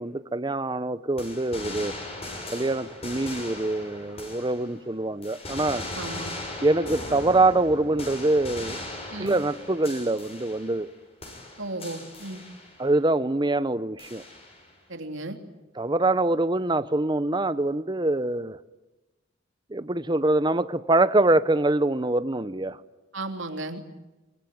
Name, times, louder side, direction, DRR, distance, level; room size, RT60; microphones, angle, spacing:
voice 1, 0.0-1.9 2.5-5.8 6.6-8.8 9.2-10.9 12.8-14.2 15.8-18.6 19.7-22.8, right 2 dB, 20° right, 0.8 m, -24 dB
sound 1, 1.2-4.9 5.2-10.9 11.2-12.9 14.0-14.7, left 1 dB, 30° left, 6.1 m, -39 dB
voice 2, 5.9-6.3 9.1-9.4 11.6-12.4 14.9-15.4 23.1-23.8, right 2 dB, 70° right, 3.0 m, -34 dB
24.0 x 24.0 x 9.4 m
head